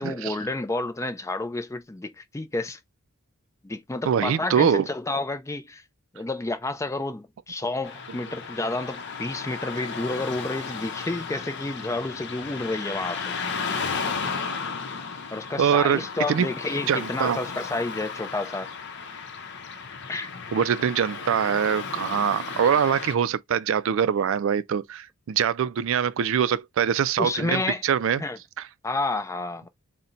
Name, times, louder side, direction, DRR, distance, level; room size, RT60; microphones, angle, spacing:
voice 1, 0.0-2.8 3.6-5.8 6.1-13.3 15.3-18.7 20.1-20.3 27.2-27.8 28.2-28.4 28.8-29.7, left 2 dB, 15° left, 0.4 m, -30 dB
voice 2, 4.1-4.9 15.6-16.5 16.9-17.4 20.5-28.2 28.6-28.7, right 8 dB, 60° right, 0.3 m, -23 dB
Car passing by / Traffic noise roadway noise, 7.8-23.1, left 5 dB, 50° left, 0.7 m, -34 dB
4.2 x 2.1 x 3.8 m
head